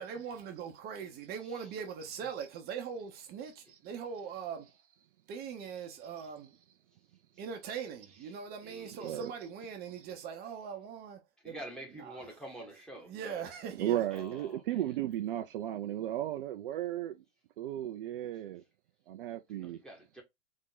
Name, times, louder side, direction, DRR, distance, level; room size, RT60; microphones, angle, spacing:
voice 1, 0.0-4.7 5.3-6.6 7.4-11.6 12.0-12.3 13.1-14.4, right 7 dB, 25° right, 0.9 m, -41 dB
voice 2, 8.3-9.2 11.4-13.4 14.1-15.0 19.6-20.2, right 1 dB, ahead, 1.4 m, -48 dB
voice 3, 8.9-9.3 9.8-9.9 13.7-17.2 17.6-18.6 19.1-19.8, right 12 dB, 50° right, 0.6 m, -35 dB
3.7 x 3.6 x 3.8 m
hypercardioid pair, 115°, 35 cm